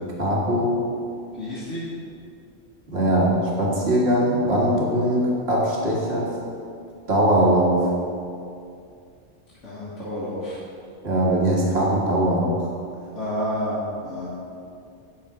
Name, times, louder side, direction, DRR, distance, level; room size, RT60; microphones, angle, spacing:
voice 1, 0.2-0.7 2.9-3.3 3.6-6.3 7.1-7.9 11.0-12.5, right 1 dB, 60° right, -4 dB, 1.9 m, -21 dB
voice 2, 1.4-1.8 9.6-10.6 13.2-13.8 14.0-14.3, equal, 85° left, -9 dB, 2.0 m, -29 dB
9.0 x 6.5 x 4.9 m, 2.4 s
omnidirectional pair, 1.2 m